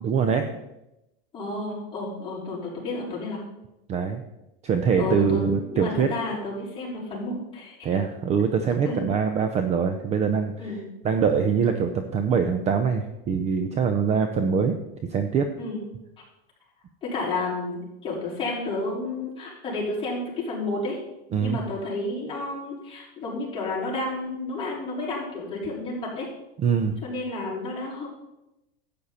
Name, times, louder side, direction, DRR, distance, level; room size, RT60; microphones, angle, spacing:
voice 1, 0.0-0.5 3.9-4.2 4.6-6.1 7.8-10.5 11.0-14.7 15.1-15.5 21.3-21.6 26.6-27.0, right 6 dB, 25° right, 7 dB, 0.6 m, -23 dB
voice 2, 1.3-3.4 5.0-7.9 8.8-9.1 10.6-10.8 15.6-15.8 17.0-21.0 21.4-26.3 27.0-28.1, left 2 dB, 20° left, -6 dB, 4.7 m, -31 dB
12.0 x 8.5 x 4.2 m, 0.92 s
supercardioid pair, 145°, 29 cm